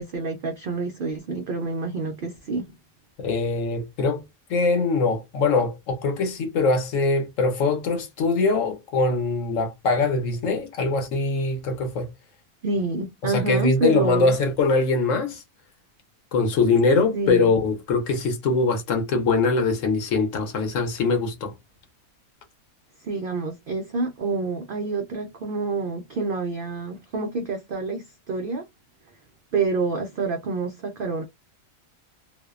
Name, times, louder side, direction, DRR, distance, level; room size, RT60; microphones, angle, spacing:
voice 1, 0.0-2.7 12.6-14.3 17.1-17.5 23.0-28.6 29.5-31.2, right 3 dB, 85° right, 0.4 m, -27 dB
voice 2, 3.2-4.2 4.5-12.1 13.2-15.4 16.3-21.5, left 3 dB, 65° left, 1.1 m, -22 dB
2.6 x 2.1 x 2.3 m
omnidirectional pair, 1.5 m